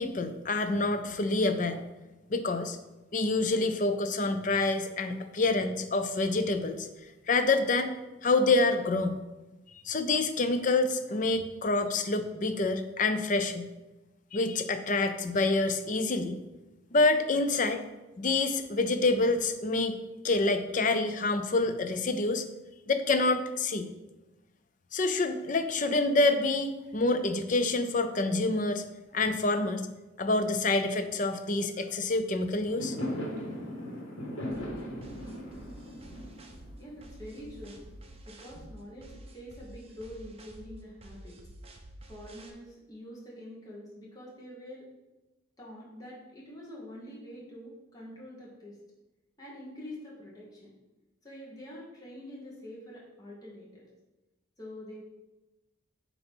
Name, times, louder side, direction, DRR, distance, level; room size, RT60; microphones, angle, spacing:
voice 1, 0.0-1.8 2.3-2.8 3.1-6.9 7.3-7.9 8.2-9.2 9.8-13.7 14.3-16.4 16.9-17.8 18.2-20.0 20.2-22.5 22.9-23.9 24.9-28.8 29.1-29.9 30.2-33.0, left 3 dB, 40° left, 9 dB, 0.5 m, -27 dB
Fireworks, 32.6-37.9, equal, 85° left, 1.8 m, -38 dB
sound 1, 34.5-42.5, right 1 dB, 30° right, 0.7 m, -49 dB
voice 2, 36.8-37.8 38.2-41.4 42.1-44.9 45.6-48.8 49.4-50.7 51.2-53.9 54.6-55.0, left 1 dB, 20° left, -5 dB, 1.3 m, -46 dB
7.9 x 3.0 x 5.3 m, 1.1 s
head